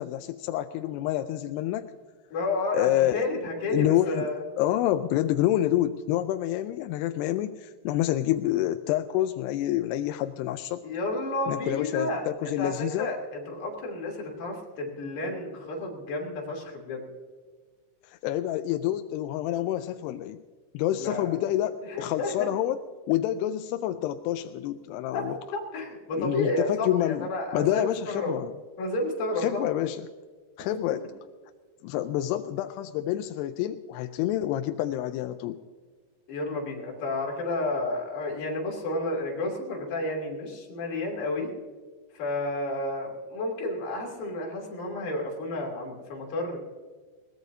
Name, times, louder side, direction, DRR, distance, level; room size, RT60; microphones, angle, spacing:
voice 1, 0.0-1.9 2.7-3.3 3.7-4.3 4.6-10.8 11.5-13.1 18.0-20.4 20.7-22.8 23.1-25.4 26.2-28.5 29.4-30.0 30.6-31.0 31.8-35.6, left 13 dB, 85° left, 8 dB, 2.5 m, -28 dB
voice 2, 2.3-4.4 10.8-17.1 21.0-21.4 21.9-22.5 25.1-25.2 25.5-28.3 28.8-29.6 36.3-41.5 42.1-46.6, left 2 dB, 55° left, -1 dB, 4.3 m, -31 dB
21.0 x 19.0 x 2.7 m, 1.5 s
omnidirectional pair, 4.9 m